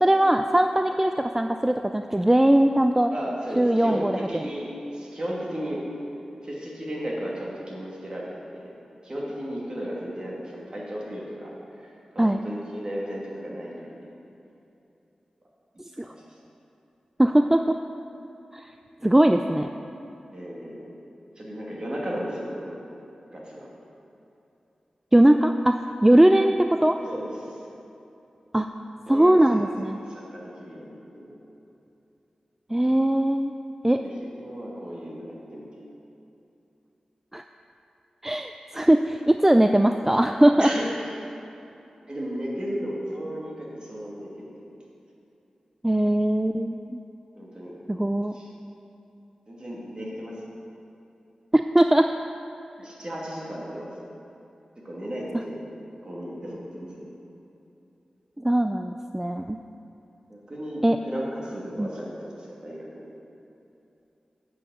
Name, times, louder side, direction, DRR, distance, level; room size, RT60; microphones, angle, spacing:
voice 1, 0.0-3.1 3.6-4.4 12.2-12.4 17.2-17.8 18.5-18.7 19.0-19.7 25.1-27.0 28.5-28.7 29.1-30.0 32.7-33.5 33.8-34.0 37.3-37.4 38.2-40.7 45.8-47.0 47.9-48.4 51.5-52.1 58.4-59.6 60.8-61.0 61.8-61.9, right 1 dB, 15° right, 6 dB, 0.4 m, -20 dB
voice 2, 3.1-4.6 4.9-5.8 6.4-8.7 9.0-11.5 11.8-11.9 12.1-14.1 16.0-16.2 20.3-20.8 21.4-22.8 23.3-23.7 27.1-27.6 29.1-31.4 33.9-35.8 40.6-41.1 42.1-44.6 47.3-47.7 48.3-48.5 49.5-50.5 52.8-53.9 54.8-55.7 56.0-57.0 60.3-63.0, equal, 45° right, -4 dB, 2.5 m, -35 dB
7.9 x 6.3 x 7.8 m, 2.8 s
cardioid pair, 50°, 2 cm